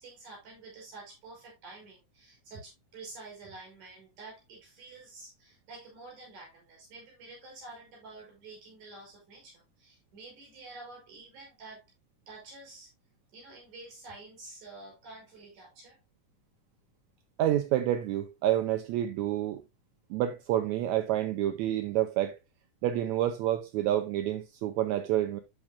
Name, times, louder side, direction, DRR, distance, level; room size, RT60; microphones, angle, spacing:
voice 1, 0.0-11.9 12.3-12.9 13.3-16.0, right 3 dB, 65° right, 6.9 m, -49 dB
voice 2, 17.4-19.6 20.1-22.4 22.8-25.4, right 12 dB, 85° right, 1.7 m, -28 dB
13.0 x 4.9 x 2.2 m
omnidirectional pair, 3.7 m